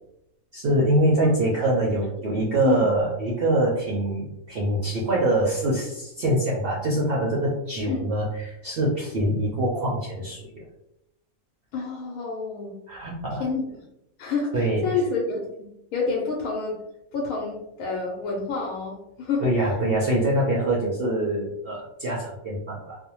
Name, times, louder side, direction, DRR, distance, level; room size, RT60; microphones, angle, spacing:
voice 1, 0.5-10.6 12.9-13.4 14.5-14.8 19.4-23.0, right 1 dB, 65° right, -4 dB, 0.6 m, -24 dB
voice 2, 11.7-12.8 13.4-13.7 14.2-15.5 15.9-16.8 17.1-19.4, left 4 dB, 80° left, -2 dB, 1.0 m, -28 dB
2.5 x 2.1 x 2.9 m, 0.81 s
omnidirectional pair, 1.5 m